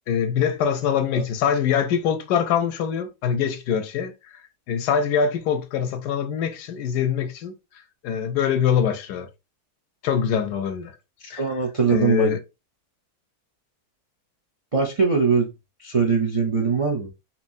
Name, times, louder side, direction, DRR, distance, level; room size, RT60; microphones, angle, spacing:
voice 1, 0.1-4.1 4.7-7.5 8.0-9.3 10.0-10.9 11.3-11.4 11.9-12.4, left 7 dB, 85° left, 1.2 m, -23 dB
voice 2, 11.4-12.3 14.7-15.5 15.8-17.1, right 5 dB, 50° right, 0.4 m, -21 dB
4.4 x 2.9 x 2.6 m
omnidirectional pair, 1.7 m